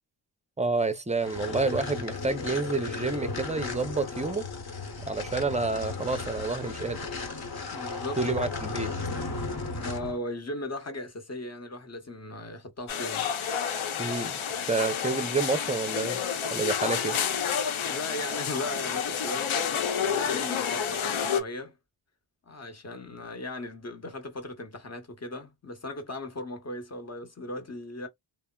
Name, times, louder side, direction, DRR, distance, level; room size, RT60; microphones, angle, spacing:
voice 1, 0.6-4.5 5.1-7.0 8.2-8.9 14.0-14.3 14.7-16.2 16.5-17.2, right 3 dB, 15° right, 0.5 m, -29 dB
sound 1, 1.2-10.2, left 3 dB, 50° left, 1.1 m, -35 dB
voice 2, 7.7-8.4 9.8-13.3 16.8-16.9 17.8-21.8 22.5-28.1, left 2 dB, 35° left, 1.0 m, -37 dB
sound 2, 12.9-21.4, left 7 dB, 80° left, 0.8 m, -29 dB
3.3 x 2.0 x 2.3 m
wide cardioid pair, 105°, 47 cm